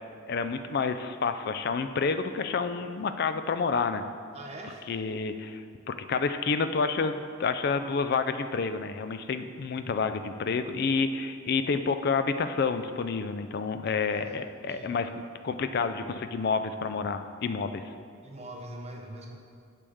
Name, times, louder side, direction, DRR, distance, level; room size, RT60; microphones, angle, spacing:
voice 1, 0.3-4.0 4.9-5.6 5.9-17.9, left 5 dB, 50° left, 9 dB, 0.4 m, -29 dB
voice 2, 4.3-4.8 13.9-14.9 18.2-19.4, right 1 dB, 30° right, 2 dB, 0.7 m, -43 dB
8.4 x 6.8 x 3.6 m, 2.2 s
head